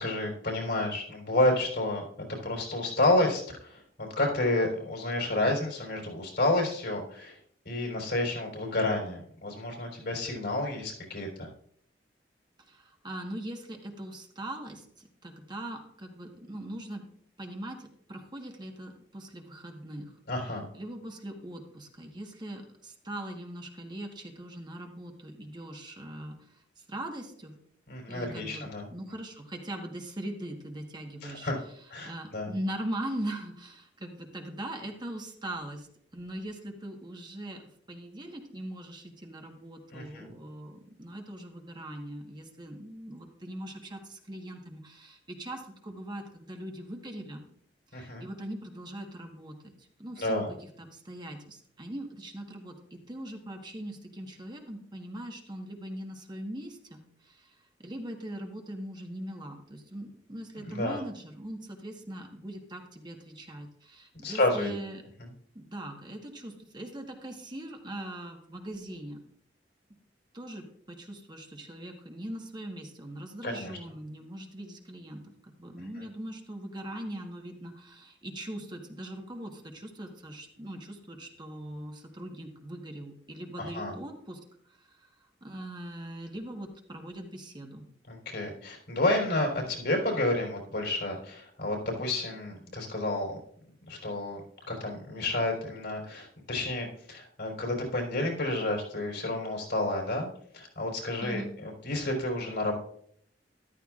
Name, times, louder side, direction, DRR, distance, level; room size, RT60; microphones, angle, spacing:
voice 1, 0.0-2.0 2.4-7.4 7.7-11.5 20.3-20.7 27.9-28.9 31.2-31.6 31.9-32.5 39.9-40.3 47.9-48.2 50.2-50.5 60.6-61.0 64.2-64.7 65.2-65.3 73.4-73.7 83.6-83.9 88.1-93.4 93.9-94.4 94.7-100.3 100.5-101.4 101.8-102.8, left 2 dB, 70° left, 0 dB, 3.9 m, -30 dB
voice 2, 12.7-17.1 17.4-20.1 20.7-27.5 28.1-31.5 32.0-35.9 36.1-37.6 37.9-47.4 47.9-65.0 65.5-69.2 70.3-84.4 84.7-85.1 85.4-87.8 101.2-101.5, right 1 dB, 25° right, 2 dB, 1.4 m, -41 dB
13.5 x 12.5 x 2.5 m, 0.65 s
head